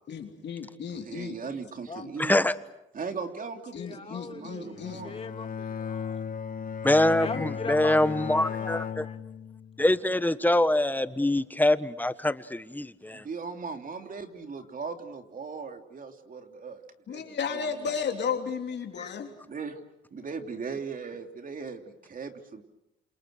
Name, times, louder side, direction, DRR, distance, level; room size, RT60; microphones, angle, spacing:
voice 1, 0.1-1.4 2.0-2.1 3.7-5.0 17.1-19.3, left 6 dB, 60° left, 3 dB, 3.3 m, -34 dB
voice 2, 0.9-2.4 2.9-5.1 13.1-16.8 17.1-17.2 17.5-17.9 19.5-19.8 20.1-22.6, right 5 dB, 45° right, 6 dB, 3.1 m, -38 dB
voice 3, 2.2-2.5 6.8-9.0 9.8-13.2, left 1 dB, 10° left, 13 dB, 1.2 m, -24 dB
voice 4, 3.8-6.2 7.2-9.2 19.0-19.3, left 4 dB, 30° left, 6 dB, 2.0 m, -40 dB
Bowed string instrument, 4.7-10.0, left 7 dB, 45° left, 1.2 m, -36 dB
28.0 x 28.0 x 6.5 m, 0.88 s
cardioid pair, 90°, 20 cm